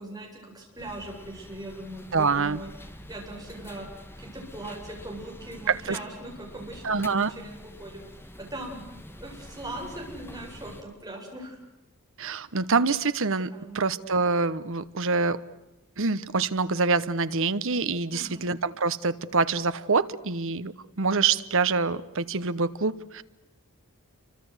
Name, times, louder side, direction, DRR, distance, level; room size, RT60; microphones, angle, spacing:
voice 1, 0.0-2.7 3.1-3.9 4.2-8.0 8.4-8.8 9.2-11.6 13.5-13.8 18.1-18.5, right 1 dB, 15° right, -1 dB, 7.9 m, -40 dB
sound 1, 0.8-10.8, left 1 dB, 10° left, 1.7 m, -46 dB
voice 2, 2.1-2.6 5.7-6.0 6.8-7.3 12.2-13.5 13.7-15.4 16.0-23.2, right 4 dB, 60° right, 13 dB, 1.1 m, -25 dB
28.5 x 25.0 x 8.2 m, 0.95 s
head